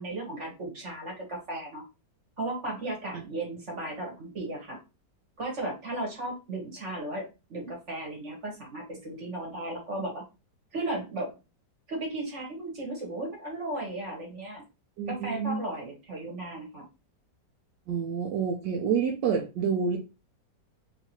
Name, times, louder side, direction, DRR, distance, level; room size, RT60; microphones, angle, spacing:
voice 1, 0.0-1.8 2.4-4.8 5.4-10.2 10.7-11.3 11.9-14.6 15.1-16.8, right 2 dB, 45° right, 0 dB, 1.5 m, -35 dB
voice 2, 15.0-15.6 17.9-20.0, right 6 dB, 75° right, 1 dB, 1.3 m, -28 dB
3.2 x 2.9 x 2.9 m, 0.28 s
omnidirectional pair, 2.0 m